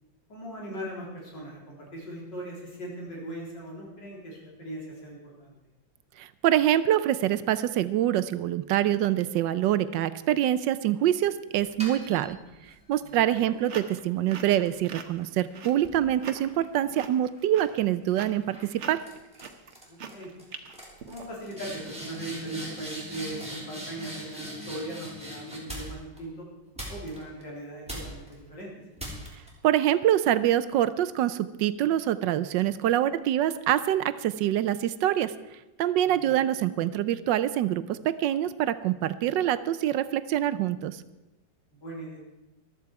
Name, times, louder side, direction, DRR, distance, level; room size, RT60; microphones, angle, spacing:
voice 1, 0.3-5.5 13.0-13.3 19.9-20.3 21.1-26.5 26.9-28.8 36.1-36.4 41.8-42.2, right 1 dB, 70° left, -3 dB, 4.5 m, -39 dB
voice 2, 6.2-12.4 12.9-19.0 29.6-35.3 35.8-41.0, right 12 dB, 75° right, 15 dB, 1.2 m, -25 dB
sound 1, 11.8-12.8 13.4-17.0 17.4-17.8 18.5-18.7 19.0-19.4 19.7-20.1 20.4-20.5 20.7-26.2 26.8-27.4 27.9-28.3 29.0-29.5, right 1 dB, 5° right, 3.4 m, -41 dB
sound 2, 13.1-21.7, right 6 dB, 45° right, 1.1 m, -43 dB
14.0 x 13.0 x 4.8 m, 1.0 s
omnidirectional pair, 2.0 m